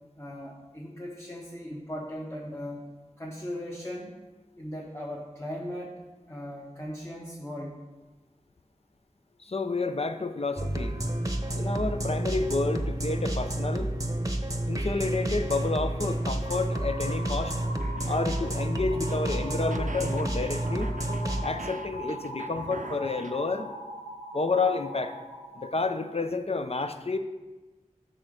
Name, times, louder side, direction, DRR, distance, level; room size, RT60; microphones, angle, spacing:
voice 1, 0.1-2.8 3.2-4.1 4.6-6.0 6.3-7.8, equal, 20° left, -3 dB, 1.1 m, -38 dB
voice 2, 9.4-11.0 11.5-13.9 14.6-17.5 18.0-20.9 21.4-23.7 24.3-25.1 25.6-27.2, left 3 dB, 50° left, 8 dB, 0.6 m, -30 dB
sound 1, 10.6-21.5, right 1 dB, 25° right, 0.8 m, -30 dB
sound 2, 16.4-25.7, left 1 dB, 75° left, 1.6 m, -41 dB
sound 3, 17.4-23.4, right 4 dB, 75° right, 0.5 m, -43 dB
7.8 x 3.9 x 6.3 m, 1.2 s
wide cardioid pair, 40°, 13 cm